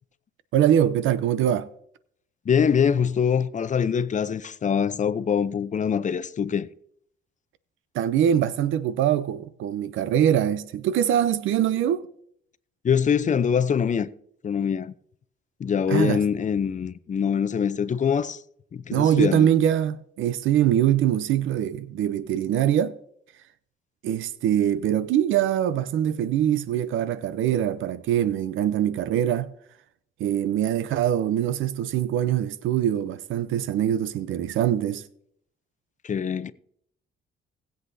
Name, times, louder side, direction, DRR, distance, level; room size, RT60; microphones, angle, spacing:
voice 1, 0.5-1.7 7.9-12.1 15.9-16.2 18.9-23.0 24.0-29.5 30.2-35.0, right 10 dB, 80° right, 0.7 m, -23 dB
voice 2, 2.5-6.7 12.8-14.1 14.4-14.9 15.6-18.4 18.7-19.5 36.0-36.5, left 7 dB, 40° left, 0.6 m, -24 dB
19.5 x 8.0 x 2.7 m
cardioid pair, 90°, 20 cm